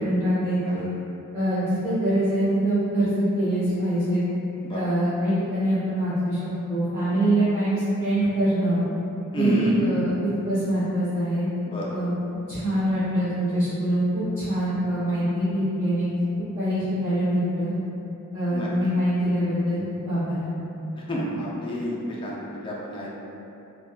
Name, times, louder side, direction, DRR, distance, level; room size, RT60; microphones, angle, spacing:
voice 1, 0.0-0.8 1.3-4.2 4.7-6.4 6.7-8.8 9.3-11.5 11.9-12.1 12.5-16.2 16.6-17.7 18.3-20.4, right 1 dB, 15° right, -19 dB, 1.2 m, -24 dB
voice 2, 9.3-9.7 11.7-11.9 18.5-18.7 21.1-22.0 22.2-23.1, left 1 dB, 25° left, -4 dB, 0.4 m, -30 dB
3.5 x 2.2 x 2.3 m, 2.9 s
head